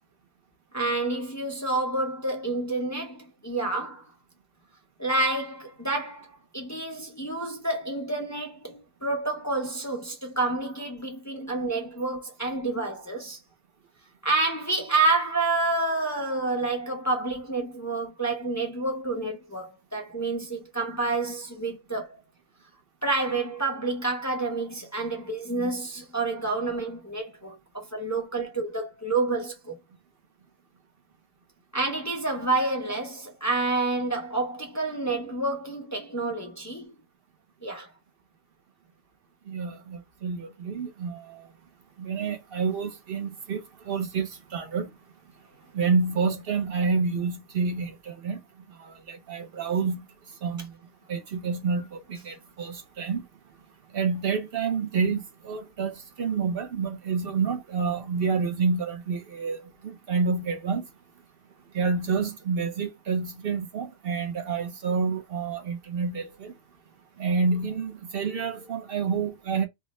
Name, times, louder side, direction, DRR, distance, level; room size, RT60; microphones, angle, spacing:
voice 1, 0.7-4.0 5.0-13.4 14.2-22.2 23.0-29.8 31.7-36.9 37.6-37.9, right 3 dB, 25° left, 0.3 m, -29 dB
voice 2, 39.5-41.5 42.0-44.9 45.7-48.4 48.8-50.0 50.4-50.7 51.1-53.2 53.9-60.9 61.7-66.5 67.2-69.6, right 5 dB, 60° right, 0.6 m, -28 dB
3.4 x 2.1 x 4.0 m
omnidirectional pair, 1.7 m